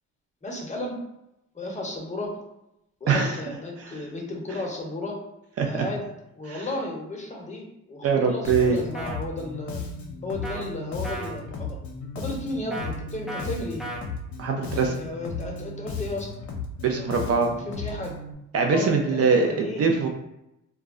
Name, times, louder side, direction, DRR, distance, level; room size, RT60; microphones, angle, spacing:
voice 1, 0.4-1.0 1.5-2.3 3.0-5.2 5.6-6.1 6.3-9.8 10.2-11.8 12.2-13.9 14.7-16.3 16.9-17.1 17.7-18.1 18.7-19.8, left 2 dB, 25° left, -1 dB, 0.7 m, -34 dB
voice 2, 3.1-3.4 3.8-4.0 5.6-5.7 6.5-6.7 8.0-8.8 14.4-14.9 16.8-17.5 18.5-20.1, right 5 dB, 55° right, 2 dB, 0.5 m, -23 dB
Bass guitar, 8.4-18.3, left 3 dB, 70° left, 0.6 m, -35 dB
sound 1, 8.9-9.2 10.4-10.6 11.0-11.3 12.7-12.9 13.3-13.5 13.8-14.0, right 1 dB, ahead, 0.4 m, -35 dB
2.2 x 2.0 x 3.6 m, 0.85 s
cardioid pair, 90°, 30 cm